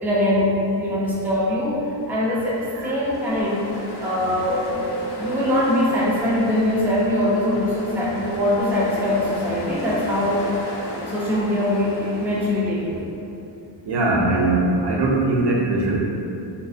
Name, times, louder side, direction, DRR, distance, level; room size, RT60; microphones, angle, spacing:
voice 1, 0.0-3.7 4.0-4.7 5.2-10.5 11.0-13.1, left 1 dB, 5° right, -6 dB, 0.3 m, -22 dB
Ocean, 1.9-13.0, equal, 60° left, 0.5 m, -34 dB
voice 2, 13.9-16.0, right 2 dB, 65° right, -2 dB, 0.5 m, -20 dB
2.5 x 2.3 x 2.4 m, 2.6 s
cardioid pair, 90°, 46 cm